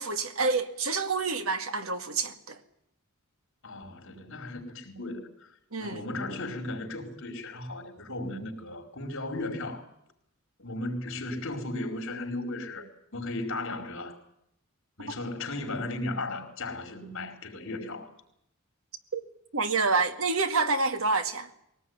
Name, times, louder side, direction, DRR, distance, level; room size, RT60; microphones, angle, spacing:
voice 1, 0.0-2.6 5.7-6.0 15.0-15.1 19.1-19.2 19.5-21.5, right 4 dB, 70° right, 2.1 m, -28 dB
voice 2, 3.6-5.5 5.8-9.8 10.6-14.2 15.0-18.1, left 2 dB, 60° left, 4.7 m, -36 dB
21.0 x 18.5 x 9.6 m
head